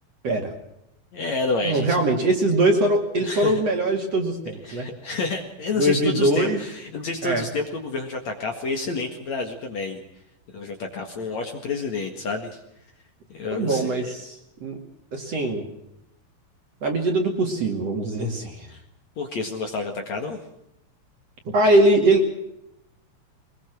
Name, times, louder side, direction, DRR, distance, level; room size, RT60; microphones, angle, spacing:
voice 1, 1.1-2.0 3.2-3.6 4.6-10.0 10.5-12.6 13.3-14.1 18.7-18.8 19.2-20.4, left 3 dB, 50° left, 3 dB, 2.6 m, -29 dB
voice 2, 1.6-4.9 5.8-6.6 7.2-7.4 13.5-14.4 14.6-14.8 15.1-15.6 16.8-18.7 21.5-22.2, right 1 dB, 45° right, 3 dB, 2.9 m, -21 dB
23.5 x 21.0 x 6.2 m, 0.82 s
omnidirectional pair, 4.8 m